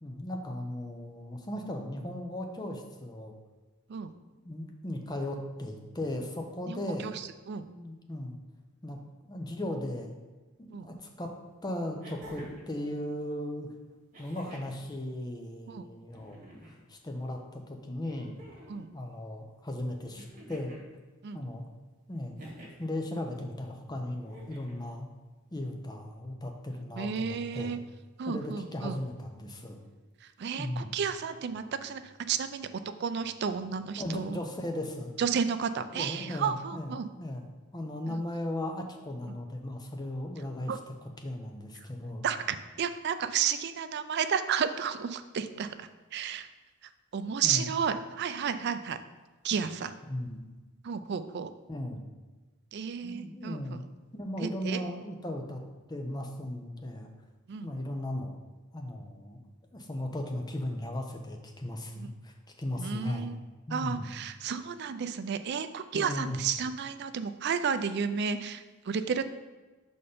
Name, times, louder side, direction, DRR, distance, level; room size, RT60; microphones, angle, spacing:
voice 1, 0.0-3.3 4.4-7.1 7.7-8.4 8.8-9.0 9.3-10.1 10.6-11.3 11.6-13.7 14.2-16.4 16.9-18.4 18.9-20.8 21.3-21.6 22.1-22.4 22.8-25.1 25.5-27.8 28.3-29.8 30.6-30.9 34.0-35.1 35.9-37.4 37.7-40.7 41.2-42.2 47.4-47.7 50.1-50.4 51.7-52.0 53.0-53.8 54.1-55.6 55.9-57.1 57.6-58.4 58.7-59.4 59.7-62.3 62.6-63.3 63.7-64.1 65.9-66.4, left 1 dB, 20° left, 3 dB, 0.7 m, -36 dB
voice 2, 6.7-7.6 10.7-10.9 15.7-15.9 18.7-18.9 21.2-21.4 27.0-27.8 28.2-28.9 30.2-32.7 33.0-34.4 35.2-37.1 38.1-38.2 40.7-40.8 41.8-41.9 42.2-46.5 47.1-49.0 49.4-49.9 50.8-51.5 52.7-53.8 54.4-54.8 57.5-57.7 62.0-62.1 62.8-63.3 63.7-69.2, right 7 dB, 55° right, 10 dB, 0.4 m, -32 dB
sound 1, 10.9-11.0 12.0-12.7 14.1-14.8 16.1-16.8 18.0-18.8 20.2-20.9 22.4-22.9 24.2-24.8 26.1-26.2, equal, 40° right, 1.8 m, -48 dB
5.4 x 4.3 x 5.0 m, 1.2 s
head